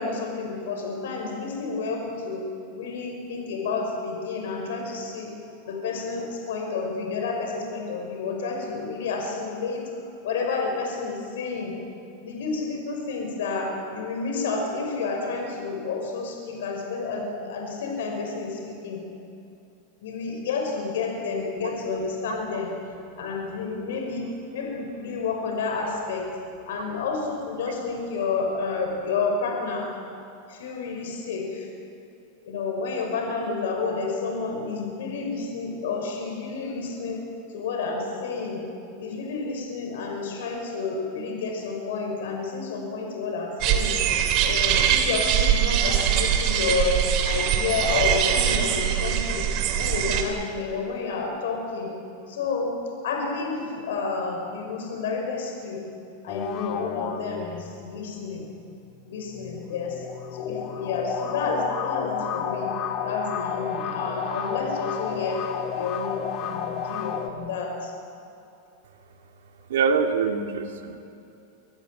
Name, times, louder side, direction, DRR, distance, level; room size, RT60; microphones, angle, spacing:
voice 1, 0.0-2.5 2.7-11.8 12.2-19.0 20.0-22.7 23.2-24.2 24.5-26.3 26.7-30.2 30.5-31.7 32.4-37.2 37.5-38.7 39.0-44.1 44.4-49.5 49.8-51.9 52.3-52.8 53.0-55.8 56.2-58.5 59.1-60.0 60.3-65.5 65.7-67.9, left 4 dB, 80° left, 1 dB, 5.7 m, -30 dB
sound 1, 43.6-50.2, right 9 dB, 45° right, 2.5 m, -23 dB
sound 2, 56.3-57.9 59.2-67.3, left 7 dB, 40° left, 2.0 m, -31 dB
voice 2, 69.7-71.0, right 5 dB, 85° right, 5 dB, 2.6 m, -24 dB
25.5 x 14.5 x 9.2 m, 2.7 s
supercardioid pair, 145°, 0 cm